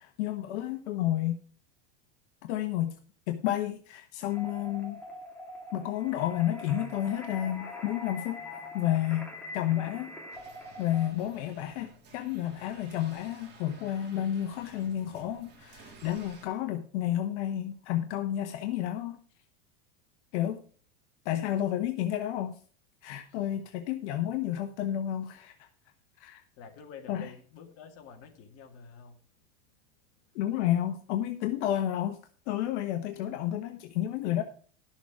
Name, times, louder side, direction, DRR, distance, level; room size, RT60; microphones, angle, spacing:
voice 1, 0.0-1.4 2.4-2.9 3.3-5.0 5.7-8.4 8.7-10.1 10.8-19.2 20.3-20.6 21.2-22.5 23.0-25.7 26.2-26.4 27.1-27.3 30.3-32.2 32.5-34.4, left 12 dB, 70° left, 1.2 m, -31 dB
sound 1, 4.3-11.1, left 2 dB, 5° left, 2.2 m, -43 dB
sound 2, 10.3-16.5, right 2 dB, 30° right, 3.4 m, -54 dB
voice 2, 23.3-23.6 26.6-29.2, left 6 dB, 40° left, 2.3 m, -49 dB
12.0 x 7.1 x 4.8 m
supercardioid pair, 140°, 35 cm